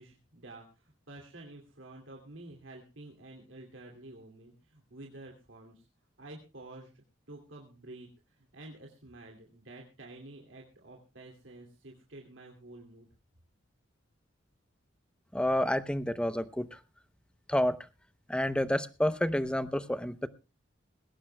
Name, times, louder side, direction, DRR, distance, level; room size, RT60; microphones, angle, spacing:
voice 1, 0.0-5.9 6.2-13.1, right 2 dB, 70° right, 0 dB, 2.6 m, -50 dB
voice 2, 15.3-16.8 17.5-17.8 18.3-20.3, left 1 dB, 5° left, 13 dB, 0.7 m, -29 dB
20.5 x 17.5 x 2.2 m, 0.30 s
head